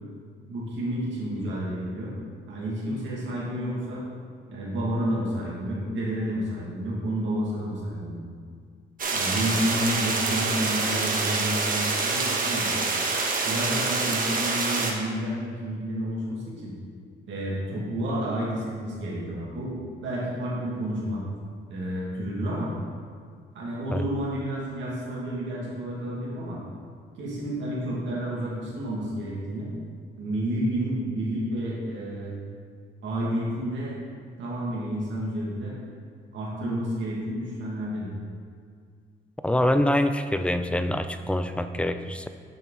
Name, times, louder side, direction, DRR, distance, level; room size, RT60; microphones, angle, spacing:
voice 1, 0.5-2.2 2.5-4.0 4.5-8.2 9.1-12.8 13.4-16.7 17.3-21.2 21.7-22.7 23.5-26.6 27.2-29.7 30.2-32.4 33.0-34.0 34.4-35.7 36.3-38.1, right 1 dB, 70° right, -6 dB, 1.9 m, -30 dB
sound 1, 9.0-14.9, right 3 dB, 45° right, 1.1 m, -26 dB
voice 2, 39.4-42.3, left 1 dB, 5° left, 9 dB, 0.3 m, -25 dB
7.0 x 5.9 x 3.8 m, 2.1 s
cardioid pair, 90°, 20 cm